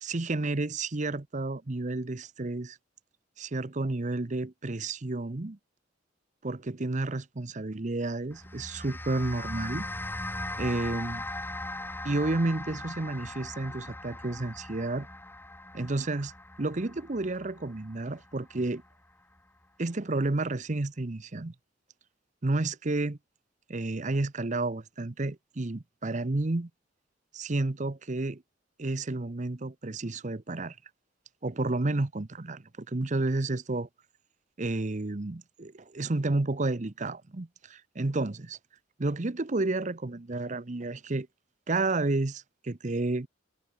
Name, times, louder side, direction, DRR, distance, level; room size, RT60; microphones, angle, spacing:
voice 1, 0.0-2.8 3.4-5.6 6.4-9.9 10.6-11.2 12.0-15.1 15.7-16.3 16.6-18.8 19.8-21.5 22.4-23.2 23.7-26.7 27.3-28.4 28.8-30.8 31.4-33.9 34.6-38.6 39.0-41.3 41.7-43.3, right 2 dB, 40° right, 0.8 m, -31 dB
sound 1, 8.3-18.9, left 1 dB, 10° left, 6.6 m, -39 dB
head